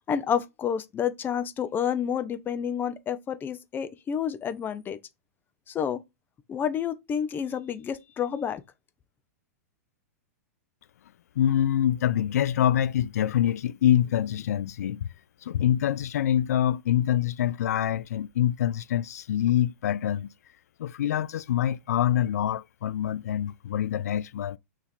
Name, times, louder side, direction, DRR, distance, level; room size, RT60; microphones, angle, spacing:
voice 1, 0.1-5.0 5.7-6.0 6.5-8.6, left 8 dB, 25° left, 0.5 m, -29 dB
voice 2, 11.4-15.1 15.4-20.3 20.8-24.6, left 11 dB, 75° left, 0.3 m, -25 dB
4.5 x 2.9 x 3.5 m
hypercardioid pair, 110°, 9 cm